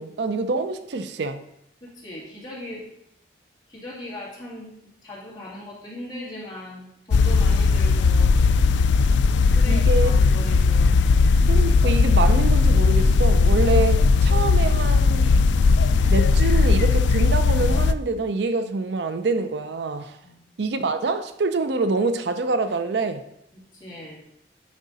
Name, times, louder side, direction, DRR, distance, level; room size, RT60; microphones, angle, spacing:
voice 1, 0.0-1.4 9.7-10.1 11.5-15.3 16.0-20.2 20.6-23.2, right 3 dB, 70° right, 0.5 m, -26 dB
voice 2, 1.8-2.8 3.7-4.7 5.0-8.4 9.5-11.0 20.2-20.4 23.5-24.2, left 1 dB, 25° left, 2.4 m, -39 dB
sound 1, 7.1-17.9, left 4 dB, 80° left, 0.3 m, -18 dB
9.5 x 3.6 x 4.0 m
head